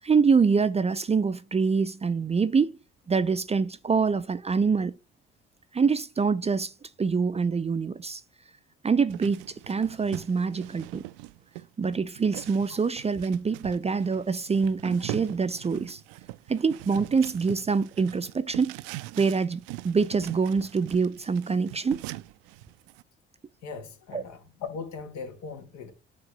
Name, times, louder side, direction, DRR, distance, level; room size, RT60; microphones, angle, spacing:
voice 1, 0.0-2.8 3.1-5.0 5.7-6.7 7.0-8.2 8.8-11.0 11.8-16.0 16.5-18.8 19.2-22.0 24.1-24.2, right 5 dB, 20° right, 0.6 m, -25 dB
sound 1, 9.1-23.0, right 19 dB, 75° right, 0.5 m, -41 dB
voice 2, 23.6-25.9, left 5 dB, 70° left, 2.2 m, -39 dB
9.7 x 3.6 x 5.5 m
hypercardioid pair, 50°, 29 cm